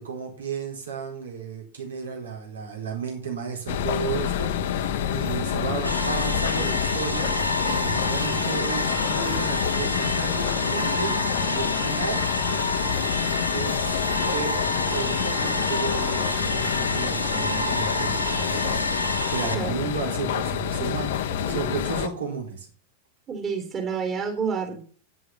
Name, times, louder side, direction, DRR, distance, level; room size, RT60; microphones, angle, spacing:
voice 1, 0.0-7.3 7.8-11.1 11.5-12.2 13.5-14.6 14.9-18.9 19.3-22.7, right 6 dB, 70° right, 1 dB, 4.3 m, -33 dB
sound 1, 3.7-22.1, left 9 dB, 55° left, 0.9 m, -28 dB
sound 2, 5.8-19.5, left 1 dB, 85° left, 1.8 m, -28 dB
voice 2, 21.4-21.8 23.3-24.8, right 6 dB, 25° right, 3 dB, 3.6 m, -29 dB
10.0 x 7.7 x 7.3 m, 0.41 s
figure-of-eight pair, 90°, 0 cm